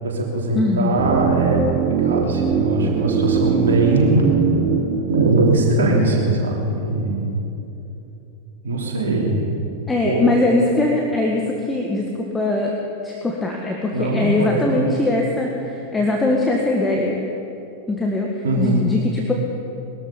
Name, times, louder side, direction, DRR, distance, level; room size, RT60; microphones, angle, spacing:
voice 1, 0.0-4.2 5.1-7.4 8.6-9.5 10.0-10.2 13.9-14.9 18.4-18.8, right 2 dB, 65° right, -1 dB, 3.2 m, -21 dB
voice 2, 0.6-1.0 9.9-12.1 12.3-12.7 13.0-17.2 17.9-18.3 18.6-19.3, left 2 dB, 10° left, -1 dB, 1.6 m, -21 dB
sound 1, 1.0-7.0 7.2-7.3, right 8 dB, 35° right, 1.0 m, -23 dB
21.0 x 13.0 x 5.3 m, 2.9 s
figure-of-eight pair, 90°, 0 cm